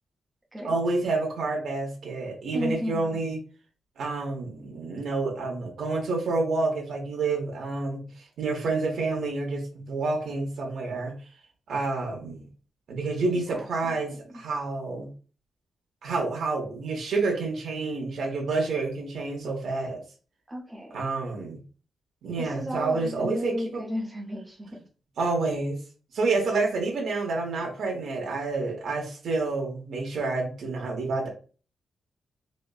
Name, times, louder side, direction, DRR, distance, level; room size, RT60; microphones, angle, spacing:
voice 1, 0.6-3.4 4.0-11.2 11.7-12.5 12.9-15.1 16.0-20.0 20.9-21.6 22.2-23.8 25.2-25.8 26.1-31.3, right 3 dB, 75° right, 0 dB, 0.9 m, -29 dB
voice 2, 2.5-3.2 13.5-14.2 20.5-21.0 22.4-24.7, equal, 10° right, -1 dB, 0.6 m, -34 dB
4.0 x 2.1 x 2.3 m, 0.37 s
wide cardioid pair, 155°, 0 cm